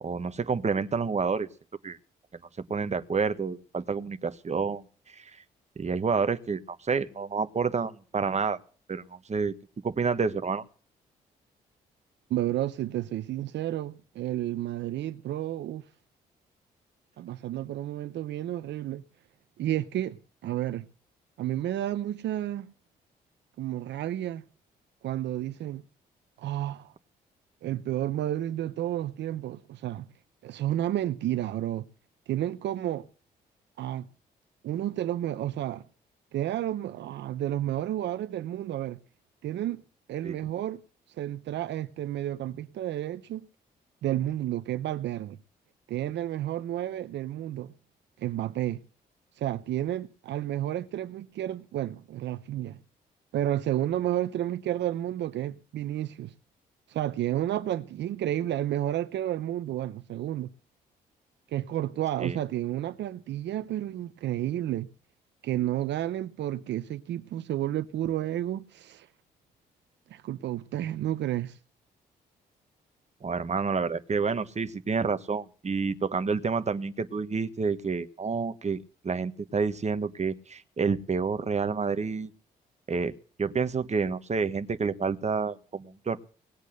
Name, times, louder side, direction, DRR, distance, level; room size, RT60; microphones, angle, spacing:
voice 1, 0.0-1.5 1.8-2.0 2.3-2.4 2.7-5.4 5.8-8.6 8.9-9.5 9.8-10.6 40.2-40.4 62.2-62.4 73.2-82.3 82.9-83.1 83.4-86.2, right 5 dB, 35° right, 1.4 m, -29 dB
voice 2, 12.3-15.9 17.2-19.0 19.6-20.9 21.4-22.7 23.6-24.4 25.0-25.8 26.4-26.9 27.6-30.1 30.4-31.9 32.3-33.1 33.8-34.1 34.6-35.8 36.3-39.0 39.4-39.8 40.1-40.8 41.1-43.5 44.0-45.4 45.9-47.7 48.2-48.8 49.3-52.8 53.3-56.3 56.9-60.5 61.5-64.9 65.4-69.1 70.1-71.6, right 12 dB, 70° right, 0.7 m, -31 dB
19.0 x 8.2 x 6.7 m
hypercardioid pair, 50°, 19 cm